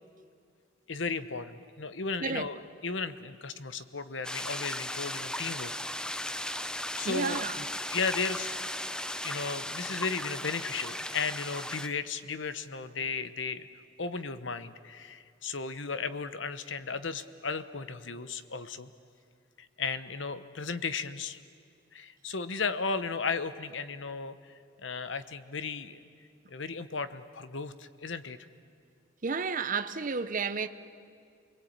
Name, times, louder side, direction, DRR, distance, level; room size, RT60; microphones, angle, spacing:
voice 1, 0.9-5.7 6.1-6.3 7.0-7.5 7.9-8.6 9.2-13.7 14.0-18.9 19.6-21.4 21.9-26.0 26.5-28.4, left 4 dB, 70° left, 1.1 m, -35 dB
sound 1, 4.2-11.9, left 1 dB, 5° left, 0.6 m, -36 dB
voice 2, 7.0-7.5 29.2-30.7, right 5 dB, 45° right, 0.8 m, -31 dB
28.5 x 22.0 x 8.8 m
head